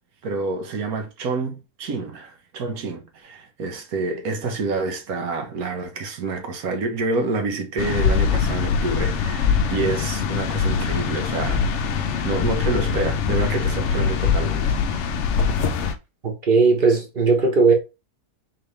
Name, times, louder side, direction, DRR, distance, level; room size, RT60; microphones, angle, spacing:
voice 1, 0.2-11.6 12.2-14.8, right 3 dB, 70° right, 1.3 m, -28 dB
sound 1, 7.8-15.9, left 6 dB, 65° left, 0.7 m, -23 dB
voice 2, 16.2-17.7, right 4 dB, 35° right, 1.3 m, -17 dB
4.0 x 3.4 x 3.2 m
omnidirectional pair, 1.7 m